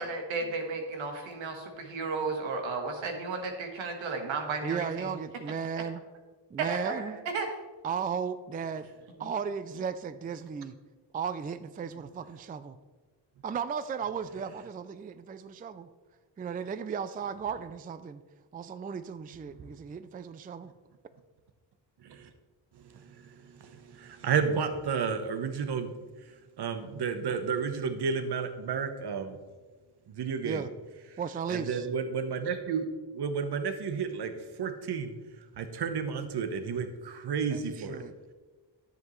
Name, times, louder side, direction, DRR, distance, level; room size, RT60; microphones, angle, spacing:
voice 1, 0.0-5.1 6.7-7.5 9.2-9.3, right 3 dB, 90° right, 3 dB, 1.5 m, -34 dB
voice 2, 4.6-6.0 6.5-7.2 7.8-8.9 9.2-10.7 11.1-12.8 13.4-15.9 16.4-18.2 18.5-20.7 30.4-30.7 31.2-31.9 37.5-38.1, right 6 dB, 20° right, 12 dB, 0.3 m, -35 dB
voice 3, 22.9-25.9 26.6-29.4 30.1-30.6 31.5-35.1 35.6-38.0, right 6 dB, 60° right, 8 dB, 1.1 m, -32 dB
10.5 x 8.1 x 3.1 m, 1.3 s
cardioid pair, 90°, 46 cm